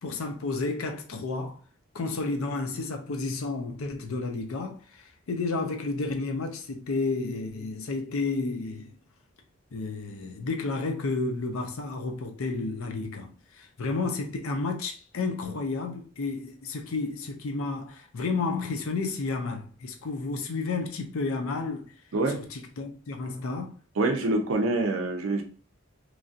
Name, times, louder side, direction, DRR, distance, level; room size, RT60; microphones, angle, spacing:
voice 1, 0.0-1.6 1.9-8.9 9.7-21.8 22.3-23.7, left 3 dB, 80° left, 0.5 m, -31 dB
voice 2, 24.0-25.4, right 2 dB, 70° right, 0.5 m, -25 dB
3.1 x 2.6 x 2.4 m
head